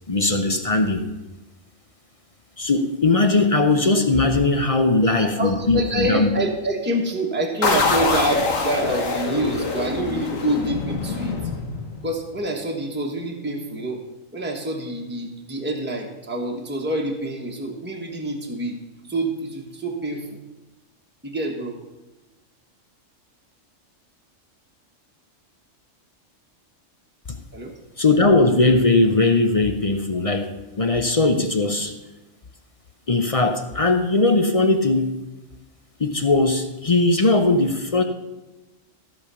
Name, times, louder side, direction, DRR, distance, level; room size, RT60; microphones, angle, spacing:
voice 1, 0.1-1.1 2.6-6.3 27.3-27.4 28.0-31.9 33.1-35.2 36.0-38.0, left 2 dB, 35° left, 7 dB, 0.6 m, -19 dB
voice 2, 5.0-11.4 12.0-14.0 14.3-18.8 19.1-20.4 21.2-21.8 27.5-27.7, right 1 dB, 10° right, 1 dB, 1.3 m, -27 dB
sound 1, 7.6-12.1, left 4 dB, 90° left, 1.7 m, -24 dB
14.0 x 5.1 x 6.9 m, 1.1 s
omnidirectional pair, 1.3 m